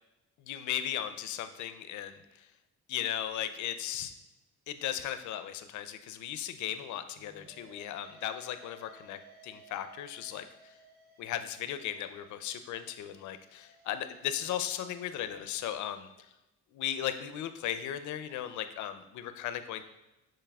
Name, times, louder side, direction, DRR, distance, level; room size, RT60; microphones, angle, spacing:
voice 1, 0.4-2.5 2.9-4.1 4.7-10.8 11.2-16.1 16.7-19.8, left 11 dB, 75° left, 10 dB, 0.4 m, -36 dB
sound 1, 7.2-15.8, right 2 dB, 30° right, 0.7 m, -59 dB
6.8 x 3.1 x 2.3 m, 0.97 s
cardioid pair, 90°, 30 cm